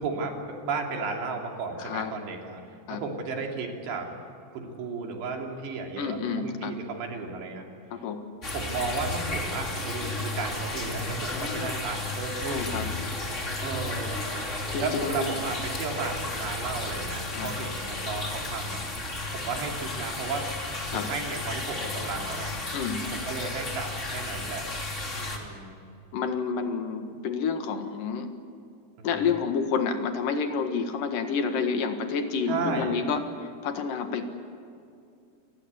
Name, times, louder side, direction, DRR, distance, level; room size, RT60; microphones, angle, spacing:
voice 1, 0.0-2.6 2.9-4.1 4.5-7.7 8.5-12.8 13.6-14.3 14.8-18.8 19.3-20.5 20.9-22.6 23.1-24.7 25.1-25.8 29.0-29.3 32.5-33.0, right 4 dB, 85° right, 1 dB, 5.1 m, -34 dB
voice 2, 1.8-2.1 2.9-3.0 6.0-6.7 7.9-8.2 11.3-11.9 12.4-12.9 14.7-15.3 17.3-17.5 20.9-21.1 22.7-23.1 26.1-28.3 29.0-34.3, left 5 dB, 60° left, 6 dB, 3.0 m, -29 dB
sound 1, 8.4-25.4, left 2 dB, 20° left, 2.5 m, -33 dB
28.0 x 20.0 x 8.3 m, 2.5 s
omnidirectional pair, 4.8 m